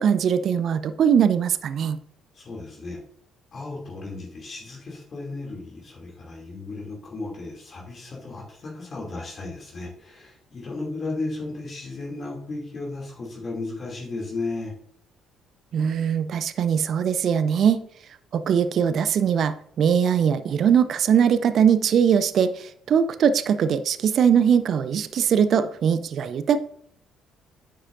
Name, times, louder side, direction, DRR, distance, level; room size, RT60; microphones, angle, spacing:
voice 1, 0.0-2.0 15.7-17.8 18.3-26.6, right 7 dB, 50° right, 13 dB, 0.5 m, -21 dB
voice 2, 2.3-3.0 3.5-14.7, left 3 dB, 40° left, -3 dB, 2.6 m, -34 dB
9.8 x 7.5 x 2.6 m, 0.63 s
figure-of-eight pair, 50°, 0 cm